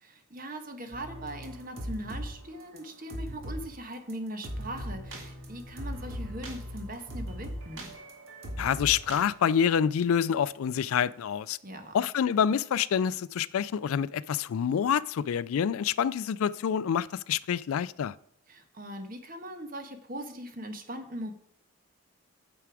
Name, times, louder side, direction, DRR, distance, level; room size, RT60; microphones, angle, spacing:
voice 1, 0.0-7.9 11.6-12.0 18.5-21.3, right 1 dB, 40° right, 1.3 m, -40 dB
sound 1, 0.9-2.3 2.6-3.7 4.1-4.2 4.4-9.6, equal, 70° right, 2.3 m, -39 dB
voice 2, 8.6-11.6 11.9-18.1, left 8 dB, 80° left, 0.3 m, -27 dB
9.2 x 6.9 x 4.8 m
head